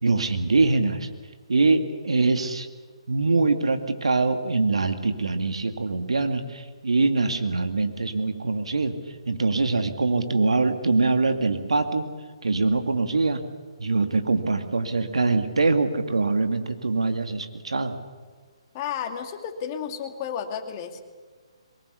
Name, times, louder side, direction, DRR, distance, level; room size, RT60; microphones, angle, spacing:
voice 1, 0.0-1.1 1.5-2.7 3.1-8.9 9.3-12.1 12.4-13.4 13.8-18.0, right 3 dB, 85° right, 7 dB, 2.2 m, -23 dB
voice 2, 18.7-21.0, left 8 dB, 30° left, 6 dB, 2.5 m, -32 dB
23.0 x 21.0 x 8.3 m, 1.5 s
hypercardioid pair, 145°, 3 cm